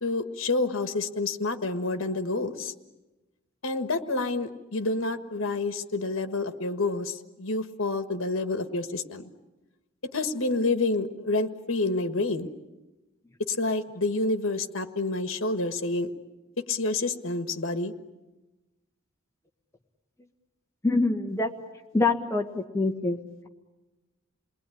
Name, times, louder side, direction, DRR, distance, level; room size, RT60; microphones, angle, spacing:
voice 1, 0.0-2.7 3.6-9.3 10.1-12.5 13.5-16.1 16.7-17.9, left 3 dB, 65° left, 9 dB, 1.5 m, -28 dB
voice 2, 20.8-21.5 21.9-23.2, left 3 dB, 15° left, 4 dB, 1.5 m, -25 dB
29.0 x 20.5 x 10.0 m, 1.1 s
head